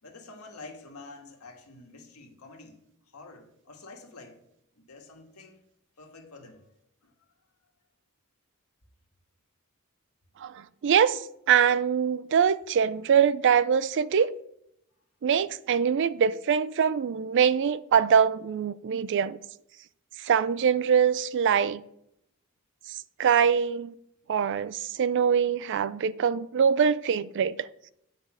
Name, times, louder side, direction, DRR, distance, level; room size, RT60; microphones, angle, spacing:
voice 1, 0.0-2.8 3.1-4.4 4.7-5.6 6.0-6.6 7.0-7.3, left 3 dB, 85° left, 1.7 m, -48 dB
voice 2, 10.4-11.2 11.5-14.3 15.2-19.4 20.2-21.8 23.2-23.9 24.3-27.7, right 7 dB, 55° right, 0.4 m, -23 dB
9.5 x 5.2 x 4.9 m
head